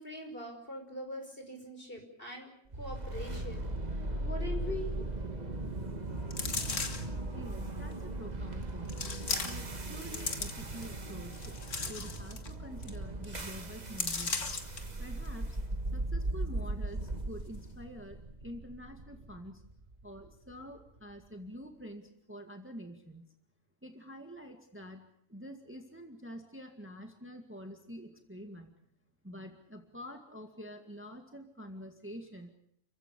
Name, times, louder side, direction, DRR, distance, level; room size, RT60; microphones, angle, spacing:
voice 1, 0.0-5.2, left 1 dB, 45° left, 3 dB, 6.0 m, -43 dB
sound 1, 2.7-20.8, right 2 dB, 35° right, 1.8 m, -38 dB
sound 2, 6.3-7.2 7.9-8.0 8.9-9.7 10.0-10.8 11.3-12.5 12.8-13.0 13.2-13.5 14.0-14.8 15.3-15.4, left 4 dB, 70° left, 2.4 m, -36 dB
voice 2, 7.3-9.1 9.4-11.6 11.8-14.5 15.0-15.6 15.9-19.6 20.0-23.3 23.8-28.7 29.2-32.5, equal, 10° right, 5 dB, 2.0 m, -47 dB
30.0 x 16.0 x 8.6 m, 0.72 s
omnidirectional pair, 1.3 m